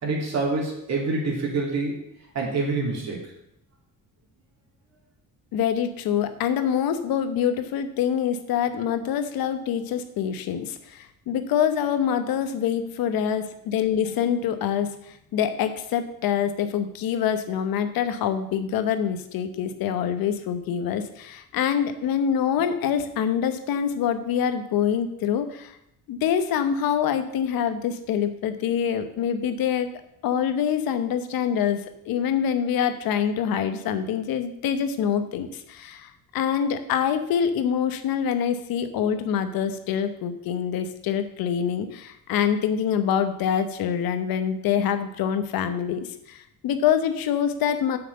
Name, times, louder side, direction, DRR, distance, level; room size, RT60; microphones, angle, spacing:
voice 1, 0.0-1.9 2.3-3.2, right 3 dB, 50° right, -1 dB, 2.9 m, -26 dB
voice 2, 5.5-25.7 26.1-29.9 30.2-46.4 46.6-48.0, left 8 dB, 85° left, 10 dB, 1.0 m, -25 dB
7.9 x 5.9 x 6.7 m, 0.78 s
cardioid pair, 125°, 34 cm